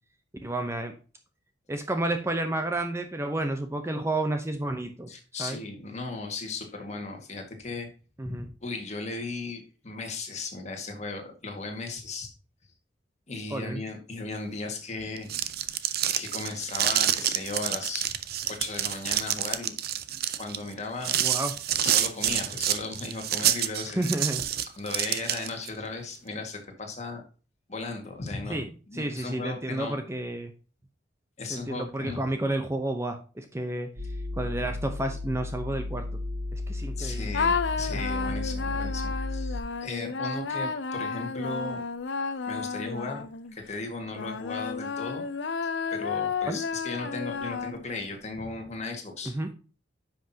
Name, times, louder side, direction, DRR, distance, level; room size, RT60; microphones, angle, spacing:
voice 1, 0.4-0.9 1.7-5.1 5.4-5.6 8.2-8.5 13.5-13.8 21.2-21.5 23.9-24.5 28.5-30.5 31.5-33.9 34.3-36.1 36.5-37.4 46.4-46.6 49.2-49.5, right 1 dB, 15° right, 6 dB, 0.7 m, -31 dB
voice 2, 5.1-7.9 8.2-12.3 13.3-15.3 16.1-18.1 18.4-19.7 20.1-21.2 21.8-24.1 24.8-27.2 27.7-30.0 31.4-32.2 37.0-41.8 42.5-43.2 43.5-45.2 45.9-49.4, left 3 dB, 40° left, 3 dB, 1.8 m, -36 dB
sound 1, 15.1-25.7, right 11 dB, 55° right, 0.6 m, -28 dB
sound 2, 34.0-39.6, left 2 dB, 75° right, 2.5 m, -33 dB
sound 3, 37.3-43.6 44.1-48.1, left 5 dB, 70° left, 0.6 m, -32 dB
9.9 x 5.9 x 2.8 m, 0.36 s
head